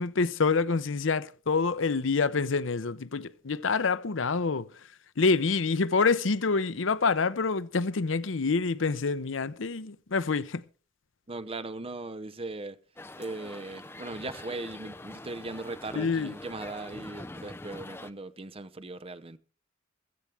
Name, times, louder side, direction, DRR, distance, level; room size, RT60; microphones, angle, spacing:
voice 1, 0.0-4.7 5.2-10.6 16.0-16.3, left 4 dB, 75° left, 0.7 m, -27 dB
voice 2, 11.3-12.8 13.2-19.4, right 2 dB, 30° right, 0.8 m, -39 dB
sound 1, 13.0-18.1, left 2 dB, 10° left, 0.6 m, -44 dB
15.5 x 14.5 x 3.4 m
head